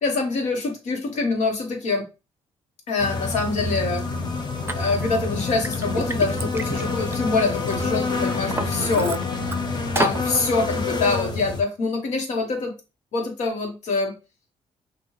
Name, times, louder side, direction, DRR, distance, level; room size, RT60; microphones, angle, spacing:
voice 1, 0.0-2.1 2.9-4.0 4.7-9.2 9.9-12.7 13.1-14.2, left 3 dB, 80° left, 3 dB, 1.4 m, -25 dB
sound 1, 3.0-11.6, left 3 dB, 40° left, 0.9 m, -27 dB
Liquid, 4.7-4.8 5.3-7.7 8.2-9.6 10.0-10.2, right 3 dB, 20° right, 0.5 m, -30 dB
6.2 x 2.6 x 3.2 m, 0.29 s
cardioid pair, 85°, 12 cm